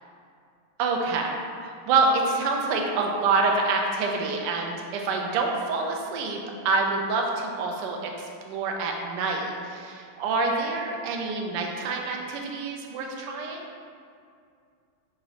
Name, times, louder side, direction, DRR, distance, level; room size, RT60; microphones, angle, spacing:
voice 1, 0.8-1.3 1.6-6.4 6.6-8.1 8.5-13.7, right 3 dB, 75° right, 1 dB, 1.0 m, -26 dB
4.1 x 2.5 x 4.7 m, 2.3 s
omnidirectional pair, 2.3 m